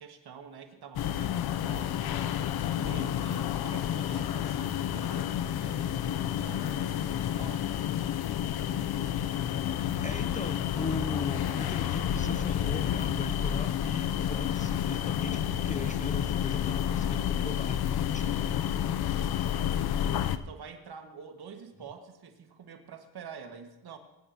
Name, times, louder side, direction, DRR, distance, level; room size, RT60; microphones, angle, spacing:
voice 1, 0.0-2.2 2.6-7.7 19.6-24.0, right 6 dB, 55° right, 5 dB, 1.9 m, -47 dB
sound 1, 1.0-20.4, left 10 dB, 55° left, 0.7 m, -30 dB
voice 2, 10.0-19.1, left 3 dB, 15° left, 10 dB, 0.6 m, -39 dB
21.0 x 10.0 x 3.0 m, 0.97 s
supercardioid pair, 70°, 46 cm